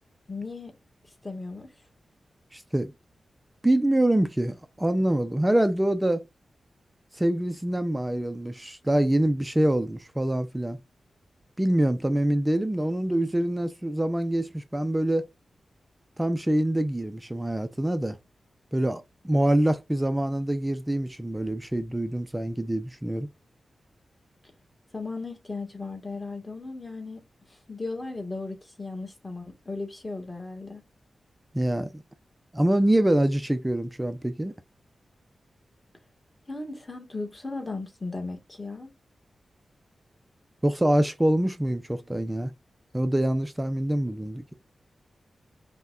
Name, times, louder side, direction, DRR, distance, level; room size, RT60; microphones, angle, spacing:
voice 1, 0.3-0.8 1.2-1.7 24.9-30.8 36.5-38.9, left 3 dB, 20° left, 1.2 m, -36 dB
voice 2, 2.5-2.9 3.6-6.2 7.1-10.8 11.6-15.3 16.2-18.2 18.7-23.3 31.5-32.0 32.5-34.5 40.6-42.5 42.9-44.4, right 1 dB, 10° right, 0.4 m, -25 dB
5.6 x 2.2 x 2.4 m
wide cardioid pair, 100°, 0 cm